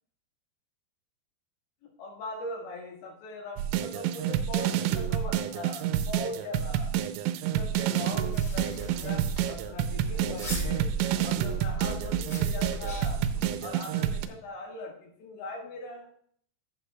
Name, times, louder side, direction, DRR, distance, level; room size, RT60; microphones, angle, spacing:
voice 1, 1.8-6.9 7.5-13.2 13.6-16.1, left 2 dB, 80° left, 0 dB, 3.9 m, -40 dB
sound 1, 3.6-14.3, right 10 dB, 90° right, 3.0 m, -29 dB
sound 2, 8.1-13.6, right 2 dB, 30° left, 0.8 m, -37 dB
13.0 x 7.5 x 2.2 m, 0.62 s
omnidirectional pair, 5.2 m